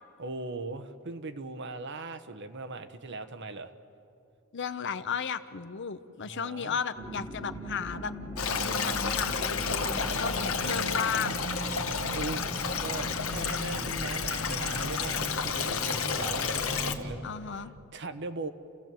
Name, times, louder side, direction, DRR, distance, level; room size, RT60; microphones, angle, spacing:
voice 1, 0.2-3.7 6.2-6.8 8.7-9.0 10.6-11.2 11.7-17.3 17.9-18.5, right 3 dB, 60° right, 9 dB, 1.1 m, -39 dB
voice 2, 4.5-8.1 8.6-11.4 17.2-17.7, left 6 dB, 60° left, 12 dB, 0.8 m, -35 dB
sound 1, 6.9-17.2, equal, 15° right, 3.2 m, -39 dB
Stream, 8.4-17.0, left 6 dB, 85° left, 1.4 m, -31 dB
30.0 x 15.5 x 7.7 m, 2.7 s
head